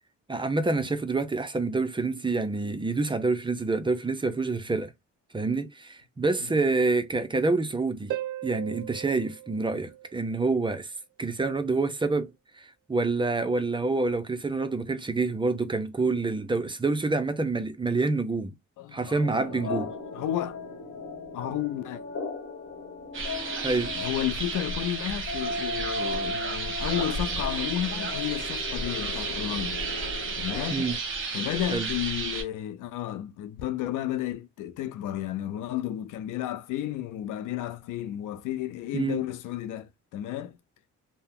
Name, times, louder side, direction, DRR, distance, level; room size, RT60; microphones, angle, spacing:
voice 1, 0.3-4.9 5.3-8.1 8.4-10.9 11.2-12.3 12.6-18.5 18.9-19.9 23.6-23.9 30.7-31.0 31.7-31.9 38.9-39.2, right 3 dB, 15° right, 0.5 m, -27 dB
Harp, 8.1-10.6 14.1-14.2, right 13 dB, 80° right, 0.5 m, -37 dB
voice 2, 18.8-19.8 20.1-20.6 21.3-22.0 23.9-29.8 30.4-30.9 31.3-40.6, left 12 dB, 85° left, 0.5 m, -32 dB
sound 1, 19.2-31.0, left 3 dB, 40° left, 1.1 m, -37 dB
sound 2, 23.1-32.4, right 3 dB, 40° right, 1.0 m, -32 dB
2.8 x 2.1 x 3.5 m
cardioid pair, 90°, 30 cm